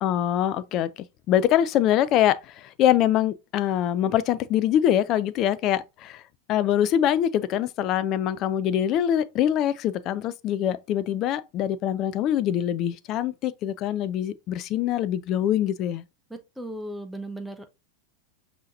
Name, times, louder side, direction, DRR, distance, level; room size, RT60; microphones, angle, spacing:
voice 1, 0.0-0.9 1.3-6.2 6.5-16.0, left 11 dB, 35° left, 0.3 m, -24 dB
voice 2, 16.3-17.8, right 1 dB, 5° right, 0.7 m, -37 dB
5.5 x 2.9 x 2.5 m
figure-of-eight pair, 90°, 0 cm